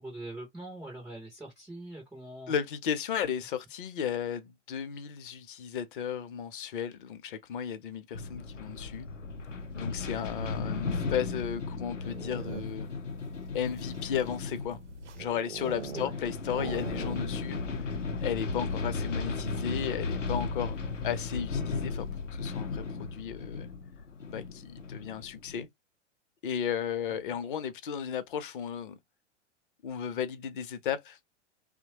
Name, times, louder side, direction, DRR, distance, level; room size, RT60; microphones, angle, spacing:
voice 1, 0.0-2.6 15.9-16.1, right 1 dB, 5° right, 0.3 m, -43 dB
voice 2, 2.5-9.1 9.7-12.9 13.5-14.8 15.2-17.6 18.2-20.8 21.0-23.7 24.3-25.7 26.4-29.0 29.8-31.2, left 8 dB, 45° left, 0.6 m, -34 dB
sound 1, 8.1-25.6, left 4 dB, 90° left, 0.6 m, -35 dB
sound 2, 11.9-13.0 13.6-16.2 16.5-17.6 17.8-17.9 18.2-18.6, right 6 dB, 70° right, 0.6 m, -42 dB
2.9 x 2.1 x 2.7 m
figure-of-eight pair, 100°, 36 cm